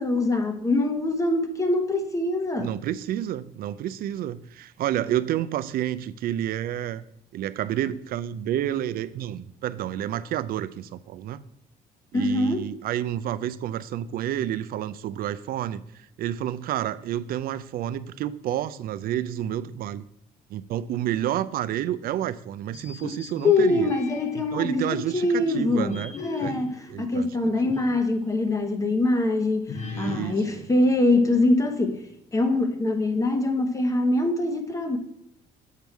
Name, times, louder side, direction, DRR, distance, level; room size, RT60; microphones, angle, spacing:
voice 1, 0.0-2.8 12.1-12.7 23.4-32.0 32.3-35.0, left 2 dB, 20° left, 1.0 m, -24 dB
voice 2, 2.6-7.0 7.3-11.4 12.1-20.1 20.5-23.9 24.4-26.1 26.4-26.5 26.9-27.4 27.6-27.7 29.8-30.6, right 11 dB, 60° right, 0.5 m, -30 dB
sound 1, 22.7-24.5 25.1-28.1 28.5-28.6 29.7-31.7, left 4 dB, 45° left, 0.9 m, -39 dB
7.5 x 5.3 x 4.6 m
cardioid pair, 110°, 17 cm